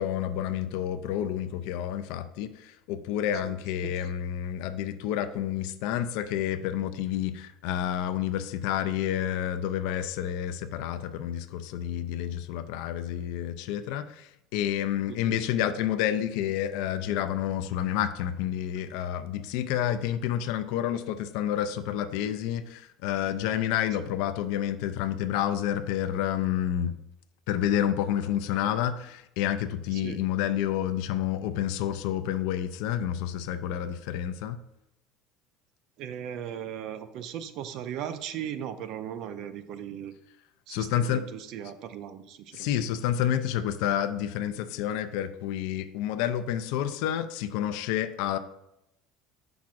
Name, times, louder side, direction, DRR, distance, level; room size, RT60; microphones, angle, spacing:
voice 1, 0.0-26.9 27.5-34.6 40.7-41.2 42.5-48.4, left 10 dB, 75° left, 10 dB, 0.4 m, -29 dB
voice 2, 36.0-40.1 40.7-42.7, right 9 dB, 60° right, 10 dB, 0.5 m, -37 dB
7.1 x 5.9 x 2.5 m, 0.85 s
supercardioid pair, 120°, 0 cm